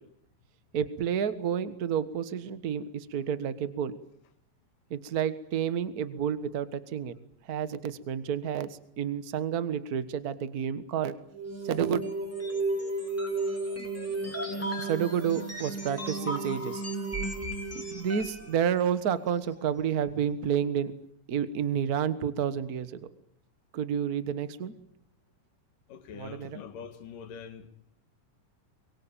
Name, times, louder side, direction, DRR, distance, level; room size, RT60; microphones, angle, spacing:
voice 1, 0.7-3.9 4.9-7.1 7.5-8.7 9.0-11.1 11.6-12.0 14.8-16.8 17.7-20.9 21.3-23.0 23.7-24.7 26.2-26.6, right 8 dB, 50° right, 1.1 m, -30 dB
sound 1, 11.3-18.5, right 2 dB, 5° left, 3.6 m, -33 dB
voice 2, 14.2-14.9 25.9-27.7, left 7 dB, 80° left, 3.5 m, -44 dB
24.0 x 22.5 x 8.9 m
omnidirectional pair, 3.8 m